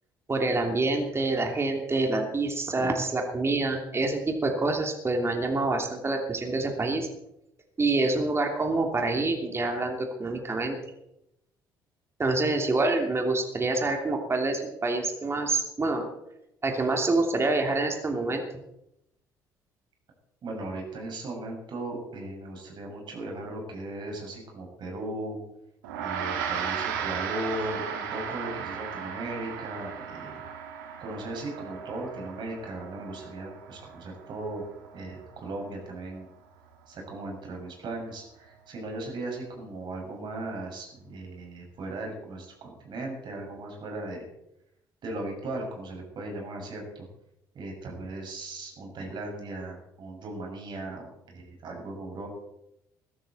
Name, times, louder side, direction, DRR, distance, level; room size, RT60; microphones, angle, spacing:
voice 1, 0.3-7.1 7.8-10.8 12.2-16.1 16.6-18.4, right 2 dB, 25° right, 3 dB, 2.9 m, -26 dB
voice 2, 20.4-25.4 26.0-30.4 31.0-36.3 36.9-44.2 45.0-47.0 47.5-52.3, right 2 dB, 45° right, 1 dB, 6.2 m, -37 dB
Gong, 25.8-35.5, right 7 dB, 70° right, 2.0 m, -36 dB
21.5 x 13.0 x 4.3 m, 0.84 s
figure-of-eight pair, 50°, 11 cm